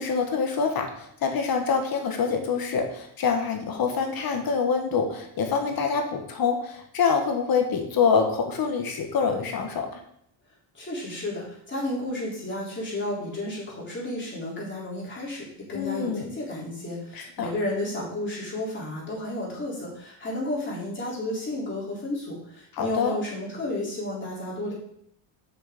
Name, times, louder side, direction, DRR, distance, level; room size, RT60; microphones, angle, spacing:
voice 1, 0.0-10.0 15.7-16.3 17.1-17.5 22.8-23.2, left 5 dB, 45° left, 4 dB, 1.6 m, -26 dB
voice 2, 10.7-24.7, left 1 dB, 25° left, -6 dB, 4.0 m, -32 dB
6.5 x 6.5 x 5.3 m, 0.71 s
cardioid pair, 135°, 48 cm